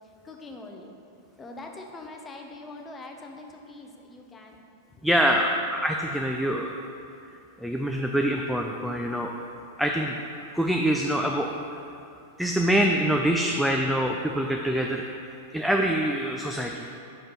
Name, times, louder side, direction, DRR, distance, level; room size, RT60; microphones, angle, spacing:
voice 1, 0.2-0.9 1.4-4.6 5.2-5.6, left 2 dB, 15° left, 2 dB, 0.7 m, -43 dB
voice 2, 5.0-6.8 7.6-9.3 9.8-11.5 12.4-16.9, equal, ahead, 1 dB, 0.4 m, -25 dB
6.0 x 5.0 x 4.0 m, 2.6 s
figure-of-eight pair, 95°, 0 cm